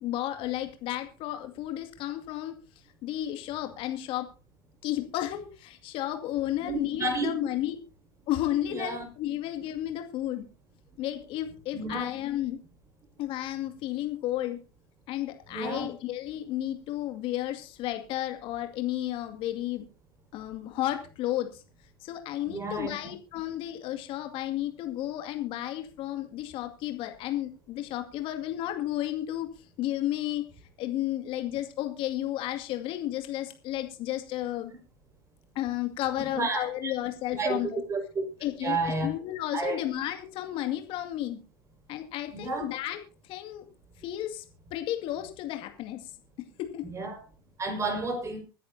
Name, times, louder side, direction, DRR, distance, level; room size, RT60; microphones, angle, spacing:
voice 1, 0.0-2.5 3.0-4.3 4.8-7.8 8.3-10.5 11.0-12.6 13.2-14.6 15.1-19.9 20.3-21.6 22.0-29.5 29.8-30.4 30.8-34.7 35.5-37.8 38.4-38.8 39.0-41.4 41.9-43.0 43.2-43.7 44.0-44.4 44.7-46.0 46.6-46.8, left 13 dB, 50° left, 6 dB, 2.2 m, -32 dB
voice 2, 6.6-7.3 8.6-9.0 11.7-12.1 15.5-15.9 22.5-23.0 36.2-36.9 37.3-37.6 37.9-38.3 38.6-39.1 39.5-39.8 42.3-42.7 46.8-47.2 47.6-48.4, right 3 dB, 25° right, 5 dB, 5.3 m, -31 dB
25.0 x 10.0 x 2.8 m, 0.32 s
hypercardioid pair, 85°, 12 cm